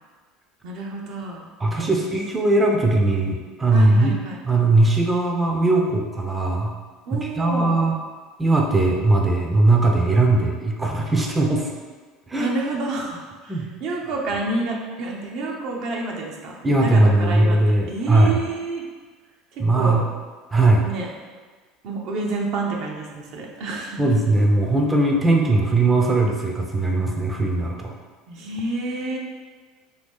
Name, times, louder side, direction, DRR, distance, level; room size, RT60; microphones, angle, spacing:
voice 1, 0.6-1.5 1.8-1.9 3.7-4.4 7.1-7.8 12.4-17.6 17.9-18.9 19.7-20.1 20.8-21.1 21.8-24.0 28.3-29.2, right 2 dB, 60° right, -1 dB, 0.6 m, -29 dB
voice 2, 1.6-4.1 4.4-6.7 7.1-7.9 8.4-11.7 12.3-12.5 13.5-13.7 16.6-18.4 19.6-20.0 20.5-20.8 24.0-27.9, right 2 dB, 15° right, 0 dB, 0.5 m, -19 dB
2.8 x 2.7 x 3.5 m, 1.4 s
hypercardioid pair, 75°, 0 cm